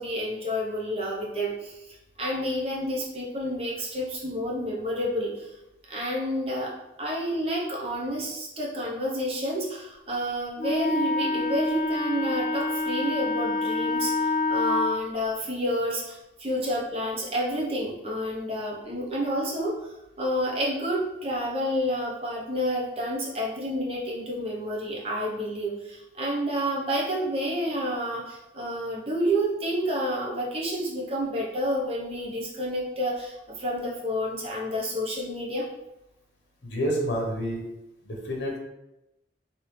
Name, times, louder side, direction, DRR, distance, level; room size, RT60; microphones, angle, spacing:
voice 1, 0.0-1.8 2.2-5.5 5.9-35.7, equal, 35° right, -4 dB, 0.7 m, -29 dB
Wind instrument woodwind instrument, 10.6-14.9, left 3 dB, 50° left, 0.8 m, -27 dB
voice 2, 36.6-37.6 38.0-38.6, equal, 75° left, -1 dB, 0.8 m, -28 dB
3.2 x 2.7 x 3.1 m, 0.91 s
head